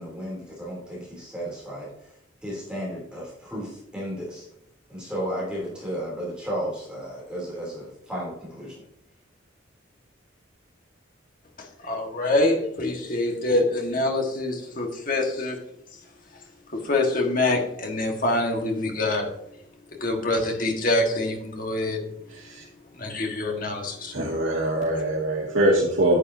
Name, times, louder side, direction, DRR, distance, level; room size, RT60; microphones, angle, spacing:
voice 1, 0.0-1.9 2.4-4.4 4.9-8.8, equal, 5° right, -5 dB, 3.1 m, -33 dB
voice 2, 11.6-15.6 16.7-19.3 20.0-22.1 22.9-24.2, left 2 dB, 45° left, 2 dB, 1.6 m, -25 dB
voice 3, 22.3-22.6 24.1-26.2, right 1 dB, 90° right, -5 dB, 2.1 m, -23 dB
9.6 x 8.3 x 2.7 m, 0.77 s
head